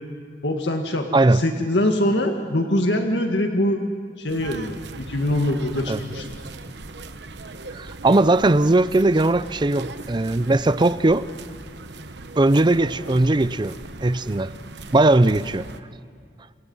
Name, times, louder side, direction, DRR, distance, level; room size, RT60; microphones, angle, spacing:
voice 1, 0.4-1.1 1.3-3.8 4.2-6.3, left 1 dB, 80° left, 3 dB, 1.9 m, -23 dB
voice 2, 1.1-1.4 5.9-6.0 7.7-11.2 12.4-13.8 14.0-14.5 14.9-15.7, right 2 dB, 25° right, 15 dB, 0.6 m, -19 dB
sound 1, 4.3-15.8, right 3 dB, 75° right, 1.1 m, -39 dB
29.0 x 27.0 x 5.6 m, 2.2 s
head